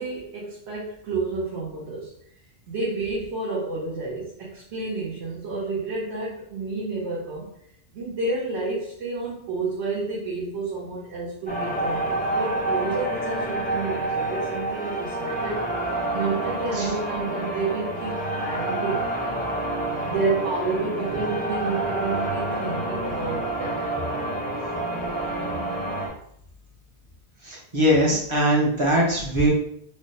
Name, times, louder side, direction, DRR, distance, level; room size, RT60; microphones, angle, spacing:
voice 1, 0.0-2.1 2.7-7.5 7.9-19.1 20.1-24.2, right 3 dB, 85° right, -5 dB, 1.0 m, -30 dB
sound 1, 11.5-26.1, right 1 dB, 15° left, 0.4 m, -28 dB
voice 2, 27.4-29.5, equal, 35° right, -4 dB, 0.7 m, -21 dB
3.2 x 2.1 x 2.7 m, 0.68 s
omnidirectional pair, 1.1 m